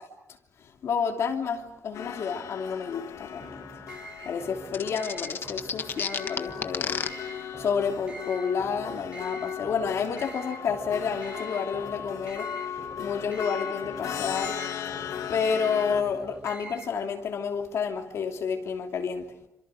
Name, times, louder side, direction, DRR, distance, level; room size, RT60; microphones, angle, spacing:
voice 1, 0.6-3.6 4.2-7.0 7.4-14.6 15.3-19.3, left 6 dB, 60° left, 2.9 m, -30 dB
sound 1, 1.9-16.0, left 9 dB, 75° left, 2.1 m, -37 dB
sound 2, 3.4-16.9, right 3 dB, 20° right, 4.1 m, -45 dB
sound 3, 4.7-7.1, left 6 dB, 45° left, 1.5 m, -30 dB
28.0 x 26.0 x 6.5 m
wide cardioid pair, 160°, 5 cm